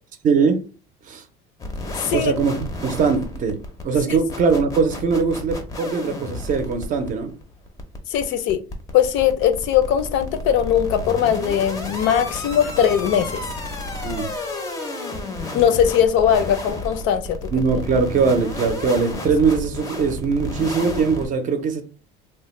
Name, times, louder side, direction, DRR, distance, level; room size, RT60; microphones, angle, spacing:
voice 1, 0.2-0.6 1.1-1.2 2.1-3.6 3.8-7.3 14.0-14.3 17.5-21.8, right 5 dB, 40° right, 0.5 m, -21 dB
sound 1, 1.6-21.3, left 2 dB, 15° left, 0.5 m, -32 dB
voice 2, 2.0-2.3 8.1-8.6 8.9-13.4 15.5-17.5, left 9 dB, 65° left, 0.5 m, -20 dB
3.2 x 2.1 x 3.1 m
cardioid pair, 140°, 21 cm